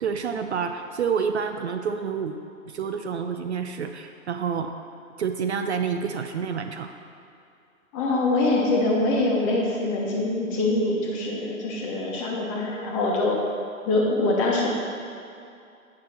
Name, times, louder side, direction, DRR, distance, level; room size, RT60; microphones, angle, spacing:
voice 1, 0.0-2.3 2.7-4.7 5.2-6.9, right 6 dB, 55° right, 7 dB, 0.5 m, -28 dB
voice 2, 7.9-13.4 13.9-14.7, left 2 dB, 25° left, -2 dB, 1.1 m, -24 dB
8.7 x 5.8 x 4.3 m, 2.6 s
hypercardioid pair, 140°, 42 cm